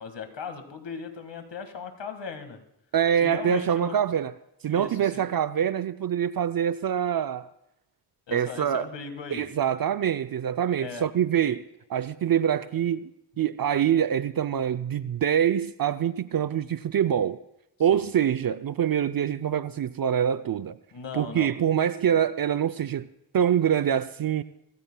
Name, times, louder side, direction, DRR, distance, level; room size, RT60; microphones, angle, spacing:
voice 1, 0.0-2.6 3.2-4.0 4.7-5.2 8.3-9.5 10.8-11.1 11.4-11.6 17.9-18.1 20.9-21.5, left 5 dB, 70° left, 1.8 m, -38 dB
voice 2, 2.9-4.3 4.6-7.5 8.3-8.9 9.3-11.6 11.9-13.1 13.4-17.4 17.8-20.8 21.1-23.1 23.3-24.4, right 9 dB, 50° right, 0.5 m, -25 dB
23.5 x 14.5 x 2.2 m
cardioid pair, 45°, 45 cm